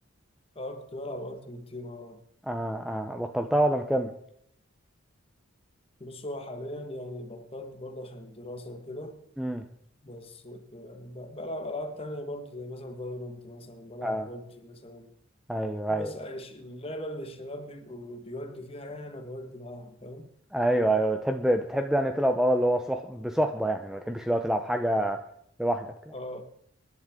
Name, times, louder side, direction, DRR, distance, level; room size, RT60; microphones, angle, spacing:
voice 1, 0.5-2.2 6.0-9.2 10.0-15.1 15.9-20.3 26.1-26.4, left 1 dB, 25° left, 1.5 m, -39 dB
voice 2, 2.5-4.1 9.4-9.6 14.0-14.3 15.5-16.1 20.5-25.2 25.6-26.1, right 1 dB, ahead, 0.6 m, -26 dB
27.0 x 11.0 x 3.7 m
head